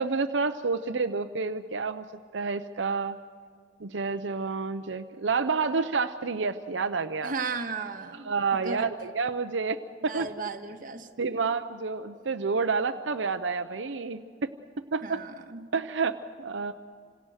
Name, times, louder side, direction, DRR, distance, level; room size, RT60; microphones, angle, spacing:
voice 1, 0.0-2.0 2.3-3.2 3.8-7.3 8.2-10.3 11.2-14.5 14.9-15.2 15.7-16.7, right 4 dB, 85° right, 7 dB, 0.7 m, -29 dB
voice 2, 7.2-8.9 10.1-11.4 15.0-15.7, right 4 dB, 50° right, 3 dB, 1.7 m, -36 dB
29.0 x 26.5 x 6.5 m, 2.1 s
head